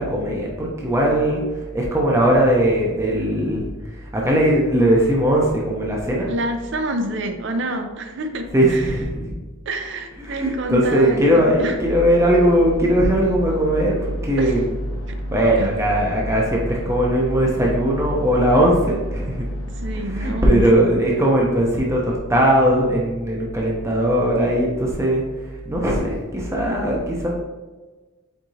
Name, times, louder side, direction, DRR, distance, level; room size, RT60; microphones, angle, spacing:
voice 1, 0.0-3.7 4.0-6.3 8.5-9.3 10.2-14.7 15.3-19.4 20.0-27.4, right 1 dB, 15° right, -3 dB, 0.6 m, -19 dB
voice 2, 6.3-8.9 9.7-11.8 14.4-14.6 15.1-15.2 15.6-15.7 19.8-20.8, right 1 dB, 60° right, 6 dB, 0.5 m, -27 dB
sound 1, 11.8-20.5, equal, 90° left, 0.7 m, -30 dB
4.6 x 3.6 x 2.7 m, 1.2 s
head